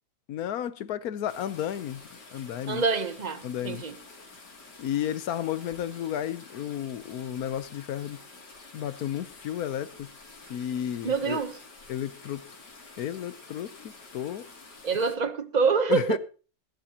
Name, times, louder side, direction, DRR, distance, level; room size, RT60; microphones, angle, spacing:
voice 1, 0.3-2.0 2.3-2.8 3.4-3.8 4.8-8.2 8.7-10.1 10.5-11.4 11.9-12.5 13.0-13.7 14.1-14.5 15.9-16.2, left 10 dB, 65° left, 1.2 m, -32 dB
sound 1, 1.3-15.2, left 3 dB, 90° left, 3.3 m, -49 dB
voice 2, 2.7-3.9 11.0-11.6 14.8-16.2, right 5 dB, 35° right, 0.8 m, -26 dB
19.5 x 10.5 x 2.9 m
omnidirectional pair, 1.8 m